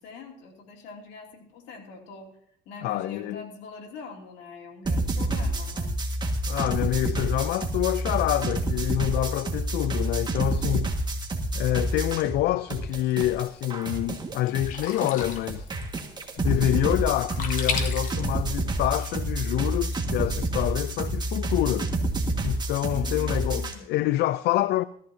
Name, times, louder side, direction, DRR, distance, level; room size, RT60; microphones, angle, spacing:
voice 1, 0.0-2.3 2.7-6.0 22.8-23.9, left 4 dB, 90° left, 2.7 m, -44 dB
voice 2, 2.8-3.4 6.5-10.9 11.5-15.7 16.4-21.9 22.4-24.8, left 15 dB, 75° left, 0.4 m, -27 dB
sound 1, 4.9-12.4 12.7-23.7, right 1 dB, 25° right, 1.8 m, -28 dB
Sink (filling or washing), 12.9-19.0, left 5 dB, 50° left, 2.1 m, -37 dB
17.0 x 13.5 x 2.8 m
cardioid pair, 110°, 17 cm